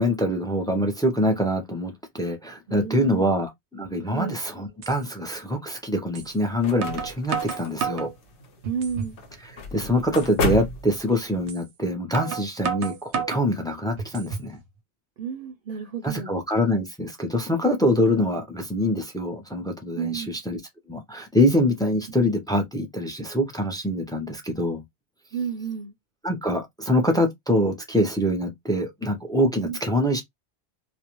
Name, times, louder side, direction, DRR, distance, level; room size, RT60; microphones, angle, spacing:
voice 1, 0.0-8.1 9.4-14.6 16.0-20.6 20.9-24.8 26.2-30.2, left 1 dB, 5° left, 0.3 m, -24 dB
voice 2, 2.7-3.3 4.1-4.4 8.6-9.2 15.2-16.3 20.0-20.4 25.3-25.9 29.6-29.8, right 7 dB, 60° right, 0.7 m, -31 dB
sound 1, 4.8-5.0 6.2-6.3 6.8-8.1 8.6-9.2 9.6-9.7 10.2-10.3 11.5-11.6 12.1-13.5 14.0-14.5, right 6 dB, 90° right, 0.9 m, -31 dB
sound 2, 6.2-11.5, left 2 dB, 90° left, 1.0 m, -33 dB
2.4 x 2.1 x 2.9 m
omnidirectional pair, 1.1 m